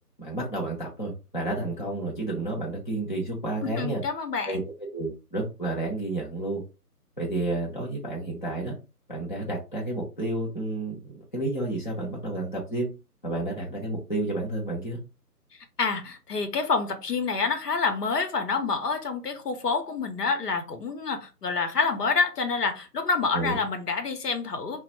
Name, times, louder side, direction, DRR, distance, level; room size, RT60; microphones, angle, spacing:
voice 1, 0.2-4.0 4.5-4.6 4.9-6.6 7.2-8.7 9.1-12.9 13.2-15.0 23.3-23.6, right 2 dB, 30° left, -4 dB, 0.6 m, -30 dB
voice 2, 3.6-4.6 15.8-24.8, left 4 dB, 75° left, 6 dB, 0.8 m, -27 dB
3.0 x 2.0 x 2.9 m, 0.30 s
figure-of-eight pair, 160°, 48 cm